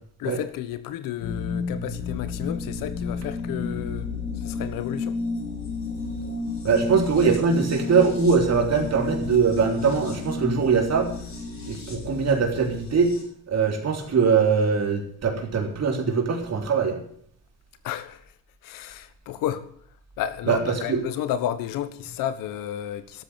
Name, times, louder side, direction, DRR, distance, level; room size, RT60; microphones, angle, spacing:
voice 1, 0.2-4.1 4.4-5.2 17.8-18.2 18.6-19.7 20.2-23.2, left 11 dB, 85° left, 1.3 m, -32 dB
sound 1, 1.2-13.2, left 3 dB, 55° left, 6.3 m, -32 dB
voice 2, 6.6-11.1 11.7-13.1 13.5-17.0 20.5-20.6 20.9-21.0, right 5 dB, 50° right, 3.7 m, -22 dB
12.5 x 8.5 x 9.0 m
cardioid pair, 85°, 32 cm